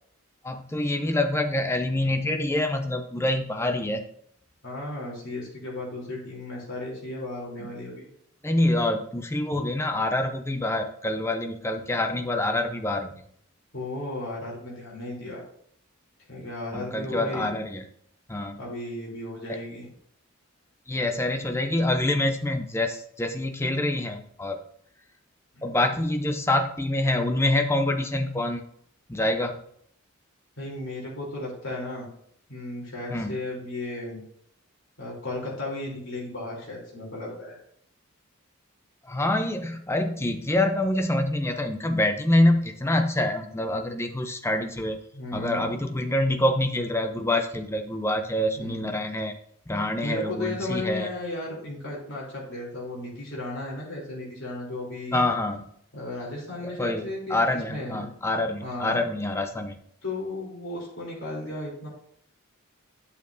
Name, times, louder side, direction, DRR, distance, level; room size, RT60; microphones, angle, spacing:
voice 1, 0.4-4.0 8.4-13.2 16.7-17.8 18.3-18.6 19.5-19.6 20.9-24.6 25.6-28.6 29.1-29.6 33.1-33.4 39.0-45.0 45.3-49.4 49.7-51.1 55.1-55.7 56.6-59.8, left 1 dB, 10° left, 6 dB, 0.6 m, -26 dB
voice 2, 4.6-8.1 9.5-9.6 13.7-15.4 16.3-17.5 18.6-19.9 25.5-25.8 30.6-32.1 32.5-34.2 35.0-37.6 45.1-45.8 48.6-49.0 50.0-55.3 55.9-57.4 57.7-58.1 58.6-59.0 60.0-61.9, left 2 dB, 60° left, -4 dB, 3.4 m, -35 dB
11.0 x 6.8 x 2.7 m, 0.67 s
head